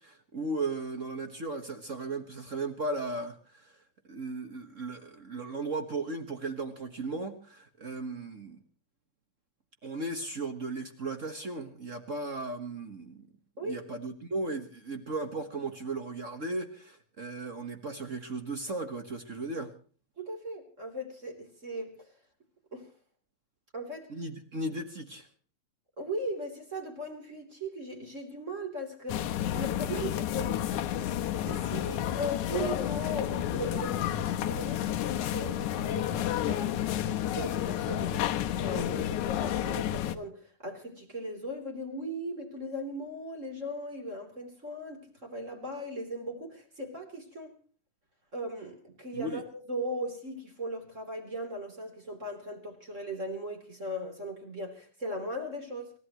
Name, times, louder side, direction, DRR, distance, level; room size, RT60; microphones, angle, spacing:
voice 1, 0.0-3.8 4.1-8.6 9.8-13.3 13.6-19.7 24.1-25.3 49.1-49.4, right 2 dB, 40° right, 1.1 m, -36 dB
voice 2, 20.2-22.1 22.7-22.9 23.7-24.1 26.0-30.6 31.4-36.7 37.3-47.6 48.3-55.9, equal, 25° right, 3.5 m, -38 dB
sound 1, 29.1-40.2, left 11 dB, 85° left, 2.4 m, -31 dB
28.0 x 15.0 x 3.0 m
omnidirectional pair, 3.4 m